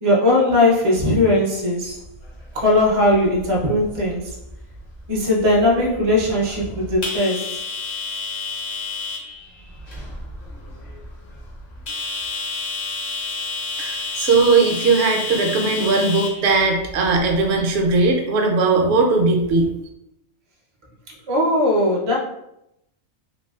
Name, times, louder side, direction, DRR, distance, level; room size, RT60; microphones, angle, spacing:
voice 1, 0.0-2.0 2.5-4.3 5.1-7.6 21.3-22.2, left 1 dB, 45° right, -3 dB, 0.4 m, -19 dB
sound 1, 2.0-18.1, left 4 dB, 50° left, 0.5 m, -32 dB
voice 2, 13.8-19.7, right 3 dB, 65° right, 2 dB, 0.7 m, -18 dB
3.0 x 2.7 x 2.3 m, 0.82 s
omnidirectional pair, 1.5 m